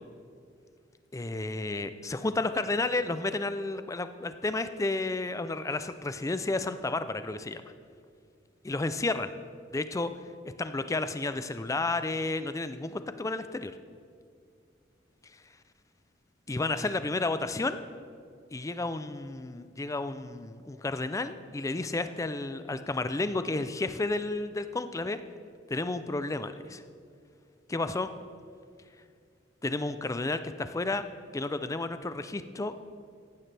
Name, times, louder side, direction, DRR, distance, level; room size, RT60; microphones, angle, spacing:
voice 1, 1.1-7.7 8.6-9.3 9.7-10.1 10.6-13.7 16.5-17.8 18.5-25.2 25.7-26.8 27.7-28.1 29.6-31.0 31.3-32.7, left 2 dB, 15° left, 11 dB, 0.4 m, -31 dB
15.0 x 11.0 x 3.4 m, 2.2 s
head